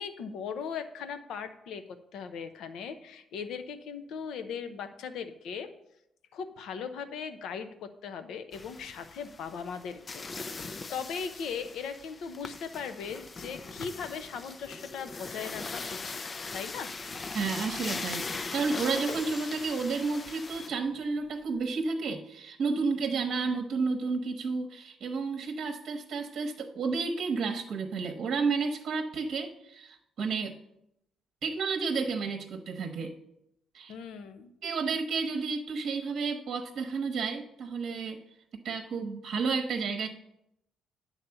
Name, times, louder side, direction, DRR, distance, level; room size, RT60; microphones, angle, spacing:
voice 1, 0.0-1.8 2.1-5.7 6.3-16.2 16.5-16.9 33.9-34.5, left 6 dB, 80° left, 9 dB, 0.7 m, -39 dB
sound 1, 8.5-20.7, left 3 dB, 35° left, 0.4 m, -40 dB
sound 2, 14.9-21.9, left 1 dB, 60° left, 2.2 m, -51 dB
voice 2, 17.3-30.6 31.4-33.1 33.7-34.0 34.6-38.2 38.6-40.1, right 4 dB, 65° right, 3 dB, 0.9 m, -31 dB
9.6 x 4.1 x 7.0 m, 0.82 s
cardioid pair, 90°, 0 cm